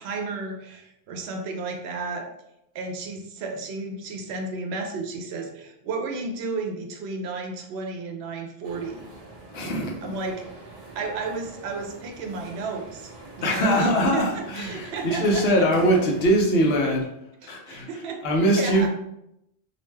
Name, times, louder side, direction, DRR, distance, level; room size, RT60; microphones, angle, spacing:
voice 1, 0.0-2.3 2.7-9.1 10.0-10.4 10.9-13.1 13.4-15.6 17.4-18.2 18.5-18.9, right 3 dB, 90° right, 3 dB, 0.8 m, -32 dB
sound 1, 8.6-16.3, right 2 dB, 45° right, 0.6 m, -44 dB
voice 2, 9.5-10.1 13.4-17.1 17.5-17.9 18.2-18.9, equal, 75° left, 0 dB, 0.9 m, -22 dB
2.6 x 2.1 x 3.2 m, 0.81 s
omnidirectional pair, 1.0 m